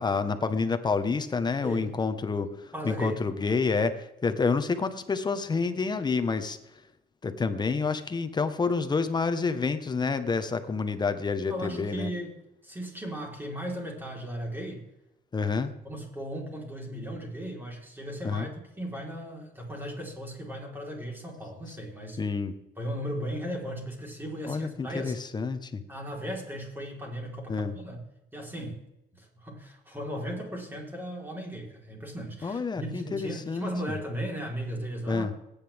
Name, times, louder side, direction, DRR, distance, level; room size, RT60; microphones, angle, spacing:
voice 1, 0.0-6.6 7.2-12.1 15.3-15.7 18.2-18.5 22.2-22.5 24.4-25.8 27.5-27.8 32.4-33.7 35.1-35.3, left 4 dB, 25° left, 10 dB, 1.3 m, -28 dB
voice 2, 1.6-1.9 2.7-3.2 11.5-12.3 12.6-14.8 15.8-18.5 18.8-22.2 22.8-25.2 25.9-28.0 28.3-28.9 29.1-35.4, equal, 10° right, 0 dB, 4.2 m, -36 dB
21.0 x 10.0 x 3.6 m, 0.89 s
cardioid pair, 110°, 17 cm